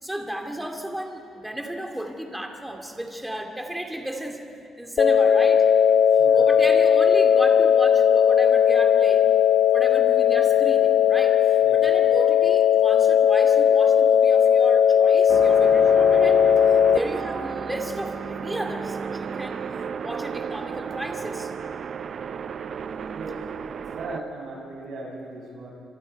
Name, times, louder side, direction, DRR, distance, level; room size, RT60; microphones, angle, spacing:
voice 1, 0.0-5.6 6.1-9.3 9.7-16.4 16.9-19.7 20.0-21.5, right 1 dB, 5° right, 3 dB, 2.5 m, -34 dB
sound 1, 5.0-17.0, left 8 dB, 60° left, 0.6 m, -17 dB
sound 2, 15.3-24.2, right 6 dB, 55° right, 0.8 m, -33 dB
voice 2, 22.7-23.4 23.9-25.7, right 2 dB, 70° right, -3 dB, 7.2 m, -38 dB
27.0 x 26.0 x 4.7 m, 2.6 s
cardioid pair, 90°, 0 cm